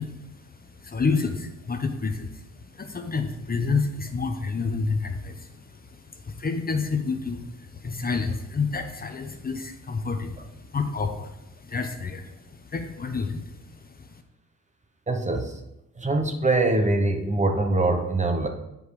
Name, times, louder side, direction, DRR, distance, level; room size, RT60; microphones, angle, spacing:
voice 1, 0.0-14.2, left 4 dB, 25° left, 6 dB, 0.9 m, -30 dB
voice 2, 15.1-15.5 16.0-18.5, right 2 dB, 20° right, 4 dB, 0.9 m, -23 dB
8.0 x 5.1 x 4.8 m, 0.87 s
cardioid pair, 85°, 33 cm